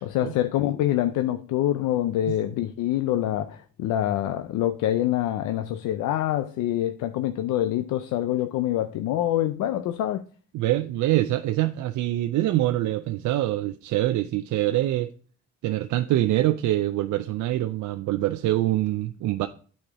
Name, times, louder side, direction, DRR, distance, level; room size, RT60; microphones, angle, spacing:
voice 1, 0.0-10.2, left 12 dB, 90° left, 0.5 m, -25 dB
voice 2, 10.5-15.1 15.6-19.5, right 15 dB, 75° right, 0.5 m, -24 dB
9.0 x 4.3 x 4.6 m
cardioid pair, 90°, 30 cm